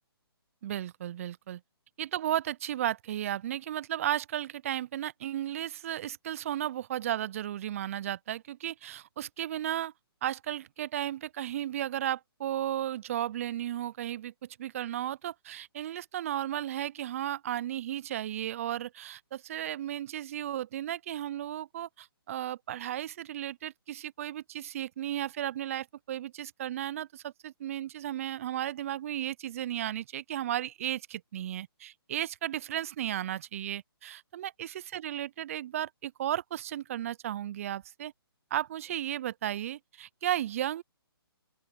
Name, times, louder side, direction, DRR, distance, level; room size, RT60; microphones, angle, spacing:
voice 1, 0.6-1.6 2.0-9.9 10.2-14.3 14.6-38.1 38.5-40.8, right 11 dB, 35° right, 0.4 m, -34 dB
open air
hypercardioid pair, 145°, 13 cm